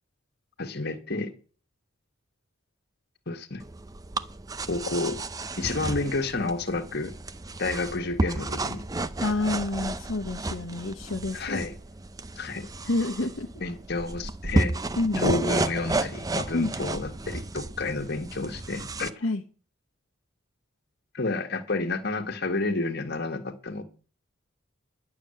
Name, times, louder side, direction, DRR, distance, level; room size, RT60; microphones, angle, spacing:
voice 1, 0.6-1.3 3.3-3.6 4.7-5.2 5.6-7.1 7.6-8.8 11.3-11.7 12.4-12.7 13.6-14.7 15.1-19.1 21.1-23.8, left 3 dB, 55° left, 1.7 m, -30 dB
sound 1, 3.6-19.1, right 2 dB, 20° right, 0.5 m, -32 dB
voice 2, 9.2-11.6 12.8-13.5 15.0-15.4 16.5-16.7 19.2-19.4, left 2 dB, 70° left, 1.1 m, -28 dB
11.0 x 7.0 x 7.8 m
head